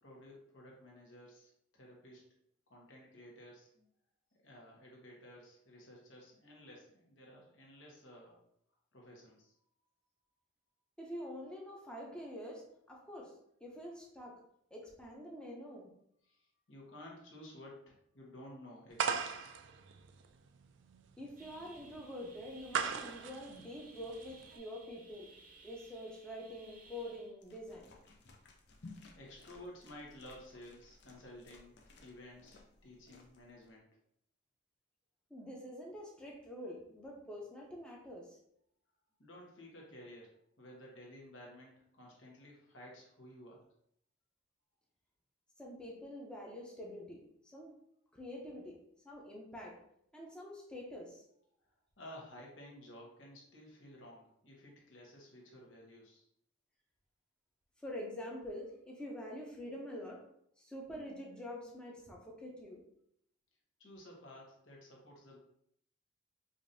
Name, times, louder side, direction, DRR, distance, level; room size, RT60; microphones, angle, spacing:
voice 1, 0.0-2.2 2.7-3.9 4.4-8.4 8.9-9.6 16.2-19.5 28.8-33.9 39.2-43.6 52.0-56.3 63.8-65.4, left 1 dB, 75° left, -2 dB, 1.2 m, -54 dB
voice 2, 11.0-13.3 13.6-14.4 14.7-15.9 21.2-25.3 25.6-27.9 35.3-38.4 45.6-47.7 48.1-49.8 50.1-51.2 57.8-60.3 60.6-62.8, left 1 dB, 5° left, -2 dB, 0.7 m, -46 dB
sound 1, 19.0-24.6, right 6 dB, 70° right, 0.3 m, -39 dB
sound 2, 21.4-27.3, right 3 dB, 45° right, 0.7 m, -59 dB
sound 3, 27.4-33.7, left 3 dB, 55° left, 0.6 m, -58 dB
5.0 x 2.6 x 2.6 m, 0.72 s
head